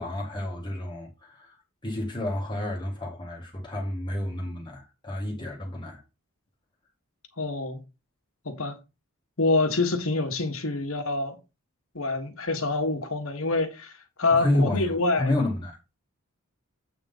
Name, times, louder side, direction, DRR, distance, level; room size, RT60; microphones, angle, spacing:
voice 1, 0.0-1.6 1.8-6.0 14.3-15.8, left 1 dB, 20° left, 1.6 m, -30 dB
voice 2, 7.4-7.8 8.4-8.8 9.4-11.4 11.9-13.9 14.2-15.3, left 3 dB, 70° left, 1.5 m, -26 dB
8.2 x 3.8 x 5.4 m
head